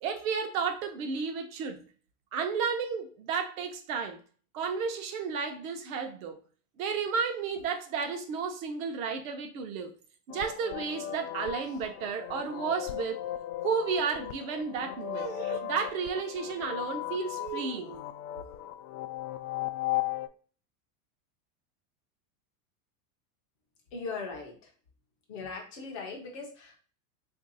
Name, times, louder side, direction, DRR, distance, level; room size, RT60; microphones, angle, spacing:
voice 1, 0.0-1.8 2.3-4.2 4.5-6.4 6.8-9.9 10.3-13.3 13.6-18.0, right 5 dB, 60° right, 5 dB, 0.7 m, -32 dB
sound 1, 10.3-20.3, left 13 dB, 70° left, 0.5 m, -37 dB
voice 2, 23.9-24.7 25.3-26.8, left 4 dB, 25° left, 1 dB, 0.3 m, -39 dB
3.2 x 2.6 x 3.9 m, 0.40 s
supercardioid pair, 170°, 47 cm